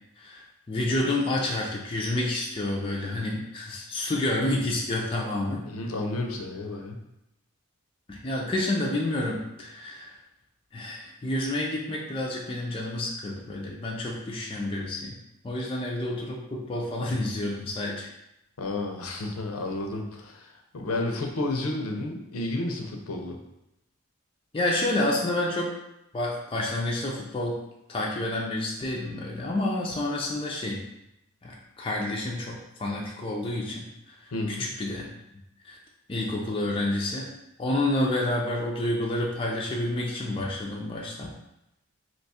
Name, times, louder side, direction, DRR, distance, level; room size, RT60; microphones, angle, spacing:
voice 1, 0.7-5.6 8.1-10.1 10.7-15.1 15.4-18.1 24.5-25.7 26.1-27.6 27.9-30.8 31.4-33.9 34.5-35.1 35.6-35.8 36.1-37.3 37.6-41.3, left 1 dB, 25° left, -2 dB, 0.4 m, -29 dB
voice 2, 5.6-7.0 18.6-23.4 34.3-34.6, left 2 dB, 75° left, 2 dB, 0.5 m, -31 dB
2.9 x 2.3 x 4.1 m, 0.87 s
head